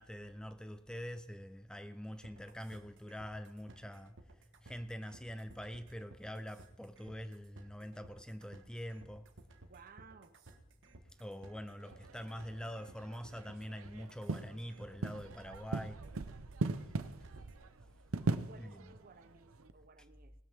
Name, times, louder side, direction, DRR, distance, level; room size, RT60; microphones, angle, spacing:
voice 1, 0.0-9.3 11.2-16.2 18.6-19.0 20.0-20.1, equal, 5° left, 0.5 m, -45 dB
sound 1, 2.2-17.7, right 2 dB, 60° right, 1.4 m, -57 dB
voice 2, 9.7-10.4 18.4-20.3, right 4 dB, 45° right, 0.8 m, -58 dB
sound 2, 11.8-19.7, right 3 dB, 80° right, 0.7 m, -40 dB
19.5 x 13.0 x 3.6 m
head